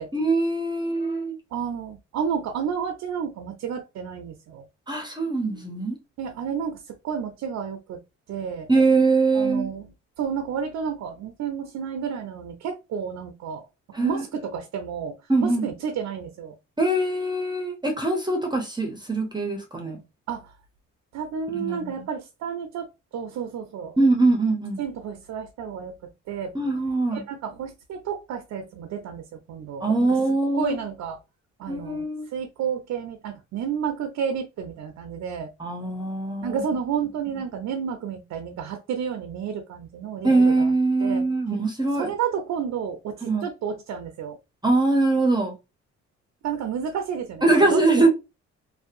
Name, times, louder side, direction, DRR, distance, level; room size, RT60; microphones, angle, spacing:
voice 1, 0.1-1.4 4.9-6.0 8.7-9.7 13.9-14.4 15.3-15.7 16.8-20.0 21.5-22.0 24.0-24.8 26.5-27.2 29.8-30.8 31.7-32.3 35.6-36.6 40.2-42.1 43.2-43.4 44.6-45.5 47.4-48.1, right 2 dB, 15° right, 0.6 m, -22 dB
voice 2, 1.5-4.6 6.2-8.0 8.3-8.7 9.3-9.9 10.2-13.6 14.0-15.2 15.4-16.6 20.3-20.5 21.1-22.9 23.1-24.0 24.8-25.9 26.3-26.5 27.1-30.2 30.6-31.2 31.6-32.0 32.3-35.5 36.4-40.7 41.0-41.2 41.9-44.4 46.4-48.1, right 7 dB, 60° right, 0.5 m, -31 dB
2.6 x 2.1 x 2.4 m
cardioid pair, 90°, 30 cm